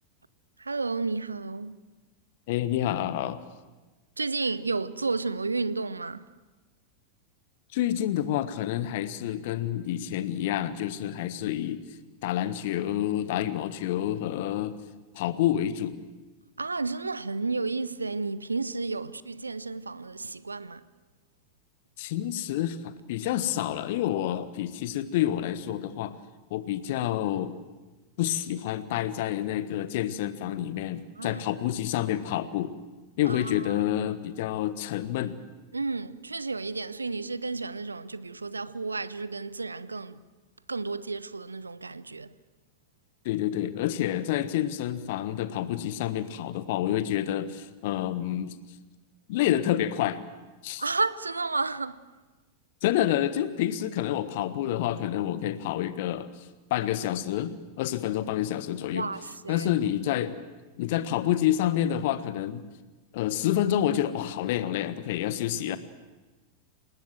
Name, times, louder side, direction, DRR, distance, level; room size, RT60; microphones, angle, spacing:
voice 1, 0.6-1.8 4.2-6.3 16.6-20.8 31.2-31.4 33.3-33.7 35.7-40.2 40.7-42.3 50.8-52.0 58.9-59.7 65.7-65.8, right 3 dB, 80° right, 0.7 m, -32 dB
voice 2, 2.5-3.4 7.7-11.8 12.2-14.8 15.1-16.0 22.0-26.2 26.5-27.6 28.2-32.8 33.2-35.4 43.2-48.6 49.3-50.2 50.6-50.8 52.8-56.3 56.7-59.1 59.5-60.3 60.8-62.6 63.1-65.8, left 12 dB, 50° left, 1.3 m, -28 dB
27.5 x 19.5 x 7.7 m
figure-of-eight pair, 90°, 0 cm